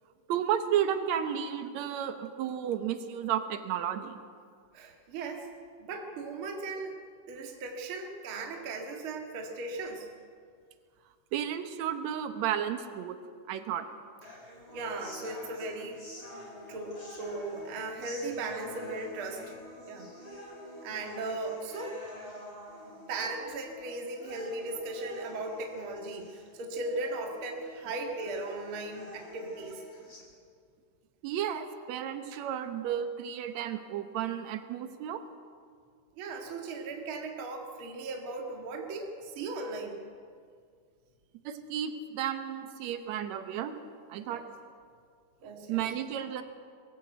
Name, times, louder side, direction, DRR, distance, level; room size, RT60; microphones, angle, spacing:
voice 1, 0.3-4.2 11.3-13.2 13.5-13.9 31.2-35.2 41.4-43.8 44.1-44.4 45.7-46.4, right 9 dB, 70° right, 9 dB, 1.7 m, -32 dB
voice 2, 4.7-5.5 5.8-7.0 7.3-10.1 14.7-16.0 16.7-19.4 19.9-20.1 20.8-22.0 23.1-29.8 36.2-40.0 44.3-44.4 45.4-45.8, right 3 dB, 45° right, 2 dB, 1.9 m, -37 dB
sound 1, 14.2-30.2, left 1 dB, 15° left, 3.9 m, -47 dB
22.0 x 15.0 x 7.9 m, 2.1 s
omnidirectional pair, 4.5 m